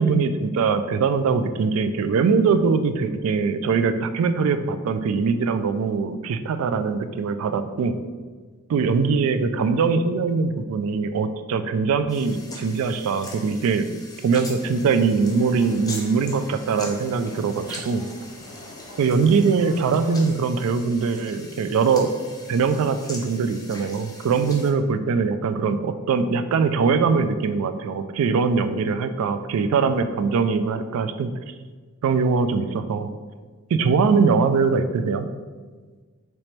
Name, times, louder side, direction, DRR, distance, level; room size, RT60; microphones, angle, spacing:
voice 1, 0.0-8.0 8.7-13.9 14.2-18.1 19.0-22.1 22.5-31.3 32.0-33.1 33.7-35.3, right 5 dB, 65° right, 11 dB, 0.3 m, -22 dB
sound 1, 12.1-24.7, left 2 dB, 15° left, 0.6 m, -41 dB
sound 2, 14.5-20.3, left 1 dB, 80° left, 1.5 m, -46 dB
4.4 x 3.0 x 3.2 m, 1.5 s
head